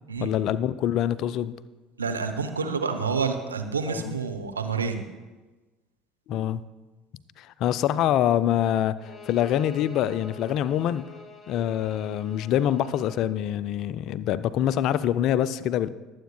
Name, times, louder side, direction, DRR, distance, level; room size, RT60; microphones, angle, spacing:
voice 1, 0.2-1.5 3.9-4.2 6.3-6.6 7.4-11.1 11.5-15.9, left 11 dB, 50° left, 16 dB, 0.4 m, -25 dB
voice 2, 2.0-5.1, right 5 dB, 85° right, 6 dB, 0.7 m, -28 dB
Bowed string instrument, 9.0-13.2, left 3 dB, 25° left, 1.6 m, -45 dB
21.5 x 8.0 x 2.3 m, 1.2 s
figure-of-eight pair, 65°, 0 cm